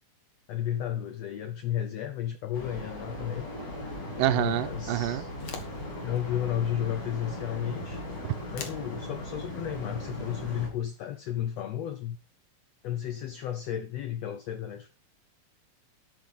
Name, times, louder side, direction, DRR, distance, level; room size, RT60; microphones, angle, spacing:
voice 1, 0.5-3.5 4.3-5.3 6.0-8.0 8.5-12.2 12.8-14.9, left 11 dB, 80° left, 1.5 m, -33 dB
sound 1, 2.5-10.7, left 1 dB, 30° left, 5.3 m, -38 dB
voice 2, 4.2-5.2 8.2-8.3, right 14 dB, 80° right, 2.3 m, -27 dB
sound 2, 5.2-11.6, left 5 dB, 55° left, 2.4 m, -49 dB
12.0 x 6.0 x 5.5 m
omnidirectional pair, 4.0 m